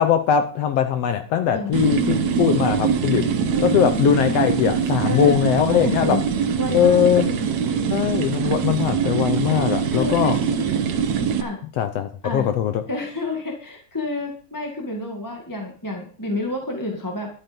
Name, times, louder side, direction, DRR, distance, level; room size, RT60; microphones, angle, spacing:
voice 1, 0.0-3.3 3.6-6.2 6.7-7.3 7.9-10.4 11.8-12.8, left 9 dB, 70° left, 9 dB, 1.7 m, -20 dB
voice 2, 1.5-2.0 3.1-3.7 5.0-5.4 5.8-6.2 6.6-8.0 9.4-9.6 9.9-10.3 11.4-11.6 12.2-12.4 12.9-17.3, left 2 dB, 10° left, 2 dB, 1.4 m, -30 dB
sound 1, 1.7-11.4, right 7 dB, 65° right, 2.3 m, -23 dB
12.0 x 8.8 x 5.3 m, 0.42 s
omnidirectional pair, 3.5 m